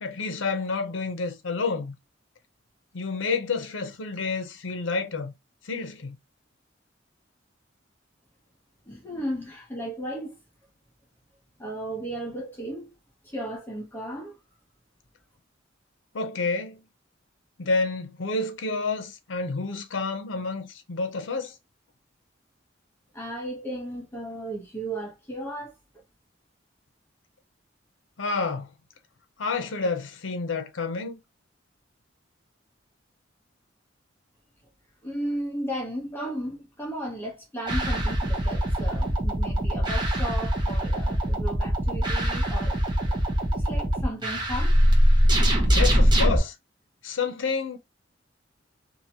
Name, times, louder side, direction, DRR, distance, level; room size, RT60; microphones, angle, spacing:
voice 1, 0.0-1.9 2.9-5.3 5.6-6.2 16.1-16.8 17.6-21.6 28.2-28.7 29.4-31.2 45.7-46.5 47.0-47.8, left 4 dB, 80° left, 0.6 m, -29 dB
voice 2, 8.9-10.4 11.6-12.9 13.2-14.4 23.1-25.7 35.0-42.8 43.1-43.2 43.5-44.7, right 1 dB, 10° left, 0.8 m, -35 dB
sound 1, 37.7-46.4, equal, 25° right, 0.8 m, -22 dB
2.8 x 2.6 x 2.7 m
head